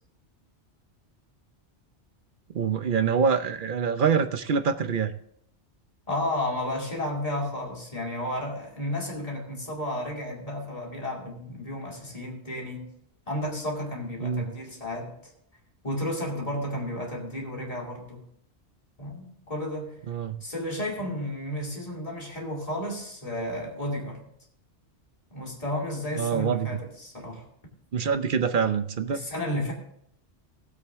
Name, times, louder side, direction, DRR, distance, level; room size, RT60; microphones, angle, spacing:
voice 1, 2.5-5.1 14.2-14.4 20.1-20.4 26.2-26.8 27.9-29.2, right 6 dB, 50° right, 10 dB, 0.8 m, -25 dB
voice 2, 6.1-12.9 13.3-15.3 15.8-18.2 19.0-20.0 20.4-24.2 25.3-27.5 29.1-29.7, left 1 dB, 30° left, -1 dB, 2.7 m, -32 dB
17.0 x 7.7 x 3.6 m, 0.71 s
omnidirectional pair, 1.2 m